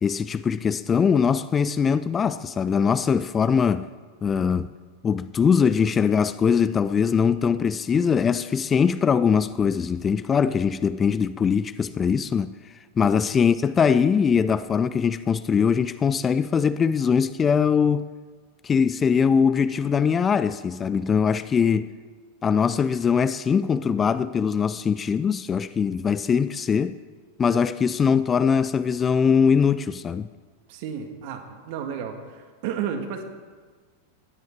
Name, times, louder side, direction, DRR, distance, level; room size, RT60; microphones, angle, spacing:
voice 1, 0.0-3.9 4.2-4.7 5.0-12.5 13.0-18.1 18.6-21.9 22.4-27.0 27.4-30.3, left 6 dB, 20° left, 0.4 m, -22 dB
voice 2, 30.7-33.2, right 8 dB, 50° right, 1.8 m, -32 dB
16.5 x 10.5 x 4.6 m
figure-of-eight pair, 90°, 0 cm